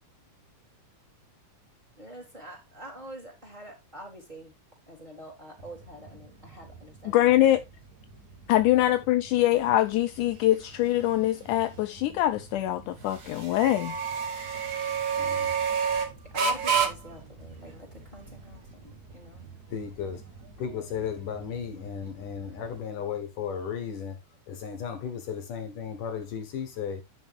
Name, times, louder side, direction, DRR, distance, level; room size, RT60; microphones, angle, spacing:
voice 1, 2.0-4.5 4.9-7.6 8.8-8.9 9.3-9.4 16.3-19.5, right 1 dB, 10° right, 3.7 m, -46 dB
sound 1, 5.6-22.8, right 6 dB, 70° right, 0.9 m, -33 dB
voice 2, 7.1-7.6 8.5-14.0, left 14 dB, 85° left, 1.8 m, -23 dB
voice 3, 15.2-15.5 19.7-20.2 20.6-24.2 24.5-27.0, left 7 dB, 65° left, 2.8 m, -35 dB
10.0 x 6.5 x 3.5 m
omnidirectional pair, 4.3 m